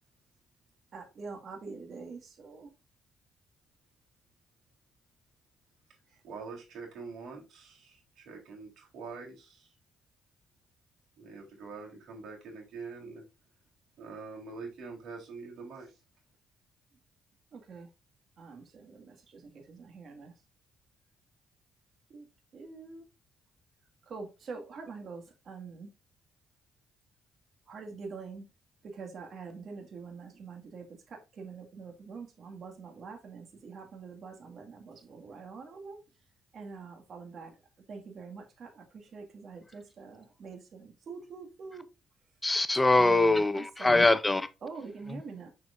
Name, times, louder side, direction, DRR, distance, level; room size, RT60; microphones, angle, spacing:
voice 1, 0.9-2.7 17.5-17.9 18.4-20.3 22.1-22.3 22.5-23.0 24.1-25.9 27.7-28.5 28.9-36.0 36.5-37.5 37.9-41.9 43.0-44.0 44.6-45.5, right 4 dB, 55° right, 2.0 m, -45 dB
voice 2, 6.2-9.7 11.2-13.2 14.0-16.0, right 4 dB, 75° right, 3.8 m, -44 dB
voice 3, 42.4-44.5, left 2 dB, 15° left, 0.6 m, -23 dB
6.6 x 6.2 x 2.6 m
cardioid pair, 90°, 0 cm